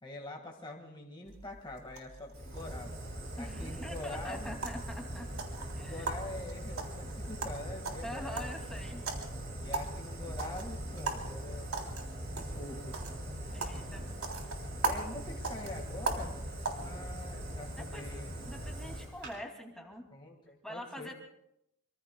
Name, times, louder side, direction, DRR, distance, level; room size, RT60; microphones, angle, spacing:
voice 1, 0.0-2.9 3.4-4.6 5.8-8.5 9.6-12.0 12.3-13.0 13.7-13.9 14.8-16.3 16.8-18.3 20.1-21.1, left 2 dB, 20° left, -1 dB, 1.8 m, -45 dB
sound 1, 1.3-16.8, right 3 dB, 85° right, 3.3 m, -41 dB
Fire, 2.3-19.3, right 1 dB, 50° right, 6.6 m, -41 dB
voice 2, 3.4-5.3 5.7-6.1 8.0-9.0 13.5-14.1 14.3-14.4 17.8-20.1 20.6-21.2, equal, 5° left, 0 dB, 2.5 m, -44 dB
25.5 x 25.0 x 2.3 m, 0.79 s
head